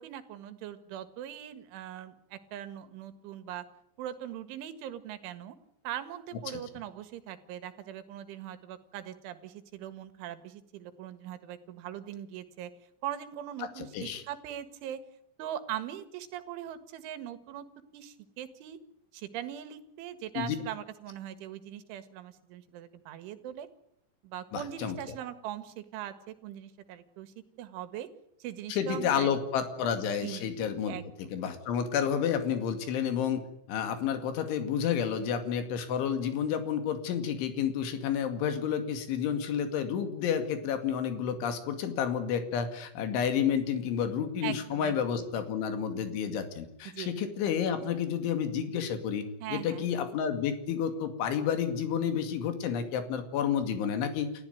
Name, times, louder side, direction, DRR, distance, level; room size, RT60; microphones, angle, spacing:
voice 1, 0.0-3.7 4.0-5.6 5.8-12.7 13.0-15.0 15.4-17.7 17.9-18.8 19.1-23.7 24.2-28.1 28.4-29.3 30.2-31.0 44.4-45.2 46.9-47.2 49.4-49.9, right 11 dB, 85° right, 11 dB, 4.2 m, -41 dB
voice 2, 13.8-14.2 20.4-20.6 24.5-25.0 28.7-33.4 33.7-54.3, left 8 dB, 80° left, 8 dB, 4.7 m, -30 dB
29.5 x 15.0 x 9.4 m, 0.73 s
omnidirectional pair, 5.4 m